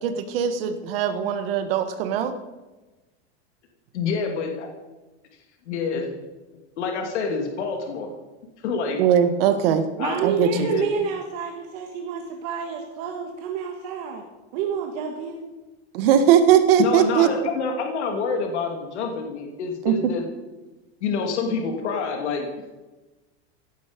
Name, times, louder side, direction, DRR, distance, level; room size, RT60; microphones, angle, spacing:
voice 1, 0.0-2.3 9.0-9.8 10.2-10.7 15.9-17.3 19.8-20.1, right 9 dB, 60° right, 9 dB, 1.6 m, -20 dB
voice 2, 3.9-4.7 5.7-6.2 6.8-8.1 8.6-9.0 10.0-10.2 10.5-10.9 16.8-20.2 21.0-22.5, left 5 dB, 90° left, 3 dB, 2.8 m, -27 dB
voice 3, 10.0-14.2 14.5-15.4, right 6 dB, 40° right, 3 dB, 1.6 m, -29 dB
17.0 x 11.5 x 5.3 m, 1.1 s
supercardioid pair, 175°, 33 cm